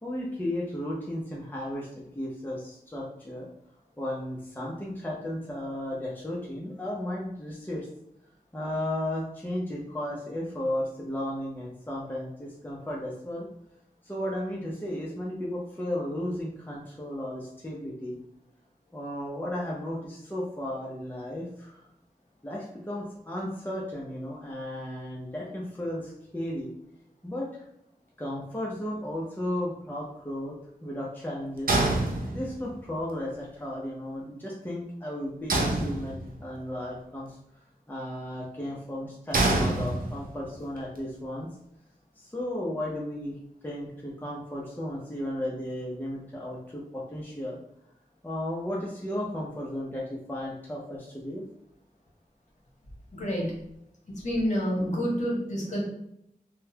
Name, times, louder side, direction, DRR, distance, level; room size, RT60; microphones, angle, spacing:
voice 1, 0.0-3.5 4.0-7.9 8.5-13.5 14.0-18.2 18.9-21.8 22.4-26.7 27.2-27.5 28.2-31.7 32.3-37.3 37.9-41.5 42.2-43.4 43.6-47.6 48.2-51.4, left 1 dB, 15° left, -4 dB, 0.6 m, -34 dB
sound 1, 31.7-32.8 35.5-36.5 39.3-40.4, right 2 dB, 75° right, 0.6 m, -26 dB
voice 2, 53.1-53.5 54.2-55.8, equal, 50° left, -4 dB, 1.3 m, -28 dB
3.7 x 2.2 x 2.8 m, 0.77 s
wide cardioid pair, 70°, 15 cm